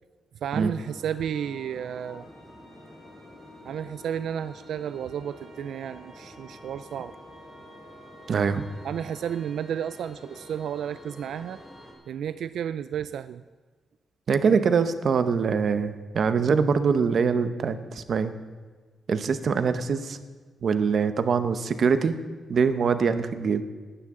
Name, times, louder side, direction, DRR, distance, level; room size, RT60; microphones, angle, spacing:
voice 1, 0.4-2.3 3.6-7.1 8.8-11.6 12.1-13.4, right 9 dB, 85° right, 13 dB, 0.3 m, -32 dB
sound 1, 0.7-11.9, left 1 dB, 30° left, 3.9 m, -47 dB
voice 2, 8.3-8.6 14.3-18.3 19.1-20.2 20.6-22.2 22.5-23.6, right 5 dB, 45° right, 11 dB, 0.8 m, -23 dB
18.0 x 12.5 x 3.7 m, 1.4 s
wide cardioid pair, 170°, 0 cm